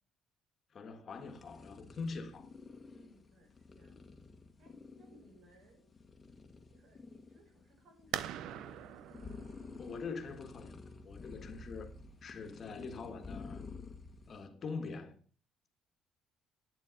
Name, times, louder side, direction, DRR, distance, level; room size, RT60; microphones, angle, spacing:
voice 1, 0.7-2.5 9.8-10.8 11.0-11.9 12.2-13.6 14.3-15.2, left 4 dB, 35° left, 1.5 m, -43 dB
sound 1, 1.1-14.5, left 4 dB, 20° left, 1.3 m, -51 dB
voice 2, 2.9-4.1 4.6-5.9 6.7-8.6, right 1 dB, 60° right, 6.7 m, -64 dB
sound 2, 8.1-13.6, right 11 dB, 75° right, 0.6 m, -45 dB
11.0 x 8.9 x 5.1 m
cardioid pair, 165°, 0 cm